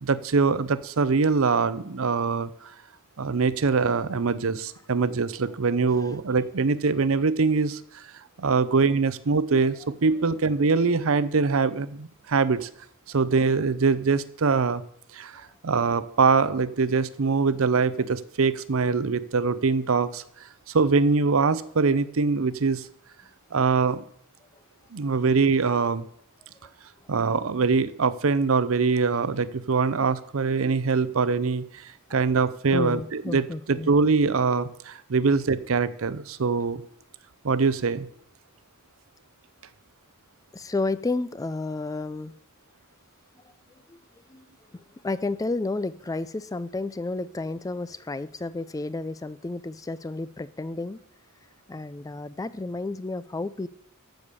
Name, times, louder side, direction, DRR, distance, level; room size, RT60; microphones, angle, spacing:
voice 1, 0.0-2.5 3.2-7.8 8.4-12.7 13.1-14.8 15.1-15.3 15.6-20.2 20.7-22.8 23.5-24.0 24.9-26.1 27.1-31.6 32.1-36.8 37.4-38.1, right 4 dB, 65° right, 15 dB, 0.6 m, -23 dB
voice 2, 32.7-33.9 35.3-35.4 40.5-42.3 43.4-43.5 43.9-44.5 44.7-51.0 51.7-53.7, left 2 dB, 15° left, 15 dB, 0.3 m, -32 dB
14.0 x 5.1 x 6.7 m, 0.69 s
head